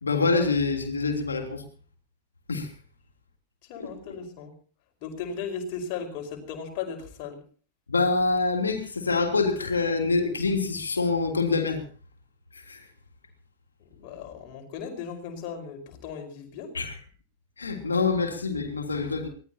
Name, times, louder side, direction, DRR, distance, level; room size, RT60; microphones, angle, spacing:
voice 1, 0.0-1.6 2.5-2.7 3.8-3.9 7.9-11.8 12.7-12.8 16.7-17.0 17.6-19.3, left 4 dB, 75° left, 4 dB, 3.2 m, -25 dB
voice 2, 3.7-4.5 5.0-7.4 13.9-16.7, left 6 dB, 45° left, 4 dB, 5.1 m, -36 dB
24.0 x 18.0 x 2.9 m, 0.42 s
figure-of-eight pair, 90°, 0 cm